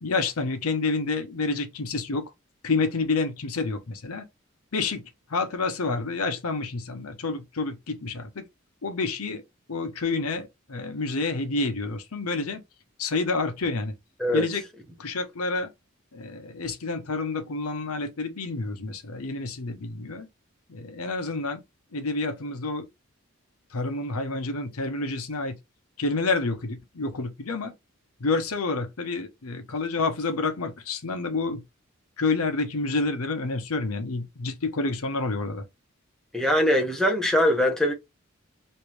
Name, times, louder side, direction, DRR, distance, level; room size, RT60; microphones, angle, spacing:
voice 1, 0.0-2.3 2.6-4.2 4.7-5.0 5.3-8.4 8.8-9.4 9.7-12.6 13.0-13.9 14.3-14.6 15.0-15.7 16.1-20.3 20.7-21.6 21.9-22.9 23.7-25.6 26.0-27.7 28.2-31.6 32.2-35.6, left 3 dB, 85° left, 0.8 m, -28 dB
voice 2, 36.3-37.9, equal, 5° left, 0.6 m, -22 dB
3.2 x 2.6 x 3.0 m
head